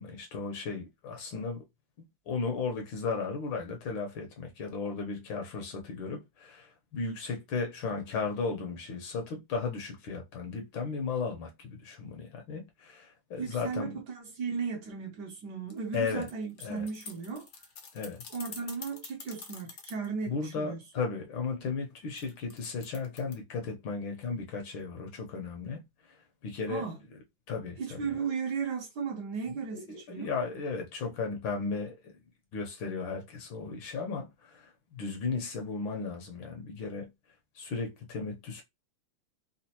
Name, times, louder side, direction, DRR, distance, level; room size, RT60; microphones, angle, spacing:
voice 1, 0.0-1.6 2.3-13.9 15.9-16.3 16.6-16.9 17.9-18.2 20.3-25.8 26.4-26.9 27.5-28.0 29.5-32.1 32.5-37.1 37.5-38.6, left 4 dB, 75° left, 1.5 m, -35 dB
voice 2, 13.4-17.5 18.3-20.8 26.7-27.0 27.8-30.3, right 5 dB, 65° right, 1.2 m, -36 dB
sound 1, 15.7-20.1 22.2-23.3, left 5 dB, 90° left, 0.6 m, -46 dB
4.1 x 2.4 x 2.8 m
omnidirectional pair, 2.3 m